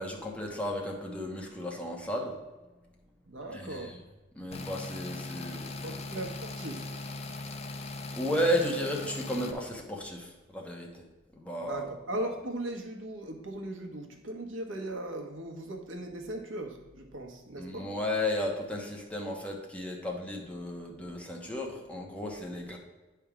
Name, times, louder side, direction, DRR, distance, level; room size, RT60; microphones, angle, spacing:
voice 1, 0.0-2.4 3.5-4.0 4.3-5.9 8.1-11.0 11.4-11.8 17.6-22.8, left 1 dB, 5° left, -1 dB, 1.1 m, -34 dB
voice 2, 3.2-4.0 5.8-6.9 11.6-17.9, right 1 dB, 75° right, 3 dB, 1.2 m, -38 dB
sound 1, 4.5-9.5, left 2 dB, 30° left, 0.7 m, -39 dB
9.9 x 3.6 x 5.9 m, 1.1 s
head